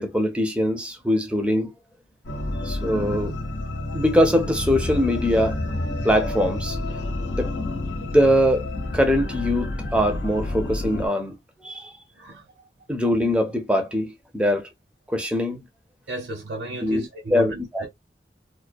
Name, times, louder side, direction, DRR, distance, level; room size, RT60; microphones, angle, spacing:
voice 1, 0.0-1.7 2.6-3.4 3.9-5.6 6.0-6.8 7.3-7.5 8.0-8.7 8.9-11.9 12.9-14.7 15.1-15.6 16.8-17.0 17.3-17.8, equal, 5° right, 0.5 m, -22 dB
sound 1, 2.2-11.1, left 2 dB, 80° left, 0.7 m, -29 dB
voice 2, 12.1-12.5 16.1-17.9, right 1 dB, 75° right, 0.9 m, -34 dB
2.3 x 2.1 x 2.5 m
head